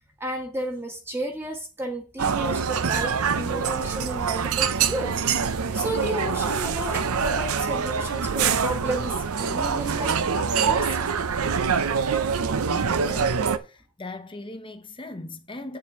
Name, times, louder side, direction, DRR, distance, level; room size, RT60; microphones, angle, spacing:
voice 1, 0.2-5.2 5.7-11.1, right 1 dB, 10° right, 1.4 m, -32 dB
sound 1, 2.2-13.6, right 6 dB, 80° right, 0.6 m, -25 dB
voice 2, 12.6-15.8, left 2 dB, 25° left, 0.9 m, -39 dB
8.9 x 7.0 x 3.6 m
head